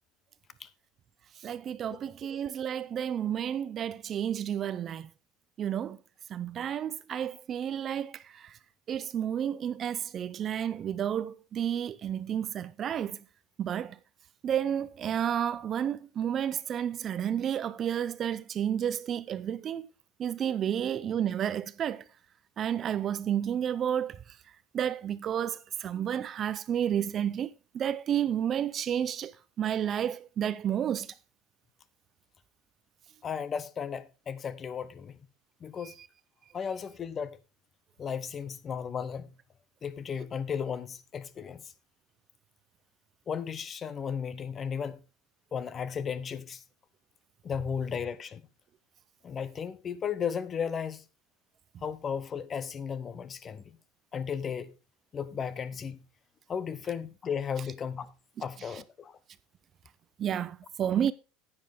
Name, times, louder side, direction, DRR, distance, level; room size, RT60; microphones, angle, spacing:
voice 1, 1.4-5.1 5.6-6.0 6.3-8.6 8.9-13.2 13.6-14.0 14.4-19.9 20.2-22.0 22.6-24.2 24.7-29.3 29.6-31.1 35.8-35.9 60.2-61.1, right 9 dB, 30° right, 0.4 m, -31 dB
voice 2, 33.2-35.2 35.6-36.0 36.5-37.4 38.0-39.3 39.8-41.6 43.3-45.0 45.5-46.6 47.4-48.4 49.2-51.0 51.8-53.8 54.1-54.7 55.1-56.0 56.5-58.1 58.4-59.2, left 7 dB, 25° left, 0.8 m, -35 dB
10.0 x 9.6 x 3.6 m
supercardioid pair, 140°, 0 cm